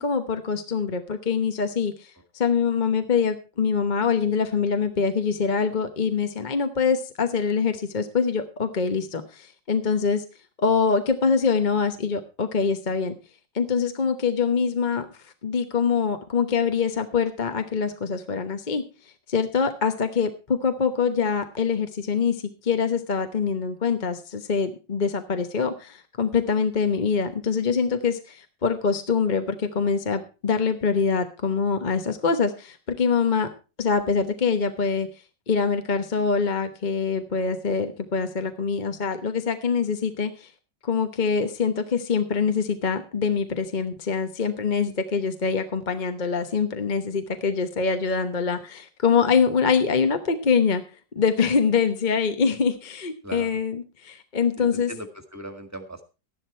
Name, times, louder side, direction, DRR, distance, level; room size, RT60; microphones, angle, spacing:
voice 1, 0.0-10.2 10.6-13.2 13.5-15.1 15.4-18.8 19.3-33.5 33.8-35.1 35.5-40.5 40.8-50.8 51.1-54.9, left 5 dB, 30° left, 8 dB, 0.9 m, -24 dB
voice 2, 53.2-53.6 54.6-56.0, right 1 dB, 10° right, 6 dB, 1.6 m, -38 dB
13.0 x 11.0 x 4.4 m, 0.32 s
omnidirectional pair, 2.1 m